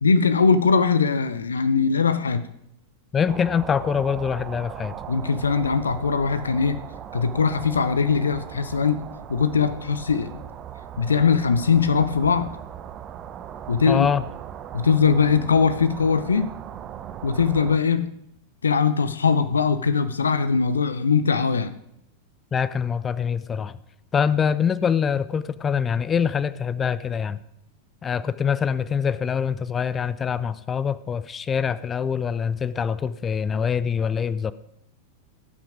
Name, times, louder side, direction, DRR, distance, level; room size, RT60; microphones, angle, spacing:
voice 1, 0.0-2.5 5.1-6.8 7.1-9.0 9.3-10.4 11.0-12.5 13.7-14.1 14.7-16.5 17.2-18.1 18.6-21.7, left 5 dB, 70° left, 13 dB, 0.6 m, -21 dB
voice 2, 3.1-4.9 13.9-14.2 22.5-23.8 24.1-27.4 28.0-34.5, left 7 dB, 20° left, 17 dB, 0.4 m, -24 dB
sound 1, 3.3-17.8, right 9 dB, 30° right, 0.7 m, -39 dB
17.0 x 6.1 x 4.9 m, 0.77 s
figure-of-eight pair, 90°, 0 cm